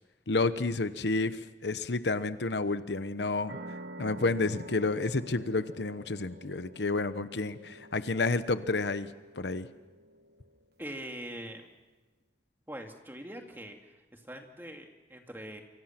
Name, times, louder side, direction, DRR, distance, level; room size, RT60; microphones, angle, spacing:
voice 1, 0.3-3.6 4.0-9.1 9.4-9.7, left 3 dB, 85° left, 12 dB, 1.0 m, -30 dB
sound 1, 3.5-10.7, right 1 dB, 65° right, 1.5 m, -48 dB
voice 2, 10.8-11.7 12.7-13.8 14.1-15.6, right 1 dB, 10° right, 3 dB, 2.4 m, -42 dB
29.0 x 24.5 x 6.0 m, 1.1 s
head